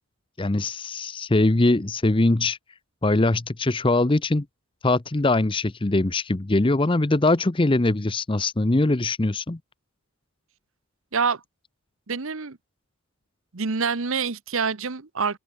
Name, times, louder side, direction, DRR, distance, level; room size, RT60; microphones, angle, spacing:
voice 1, 0.4-2.6 3.0-4.5 4.8-9.6, left 2 dB, 20° left, 0.6 m, -22 dB
voice 2, 12.1-12.6 13.5-15.4, right 5 dB, 60° right, 1.0 m, -26 dB
head